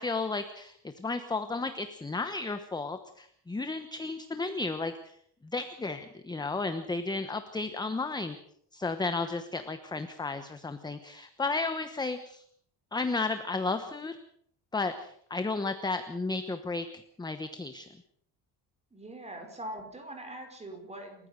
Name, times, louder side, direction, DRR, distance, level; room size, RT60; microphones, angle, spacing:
voice 1, 0.0-5.2 5.4-8.4 8.7-12.4 12.9-14.2 14.7-17.9, left 3 dB, 10° left, 9 dB, 1.0 m, -33 dB
voice 2, 18.9-21.3, right 1 dB, 15° right, 4 dB, 5.0 m, -42 dB
29.0 x 15.0 x 6.7 m, 0.65 s
cardioid pair, 175°, 42 cm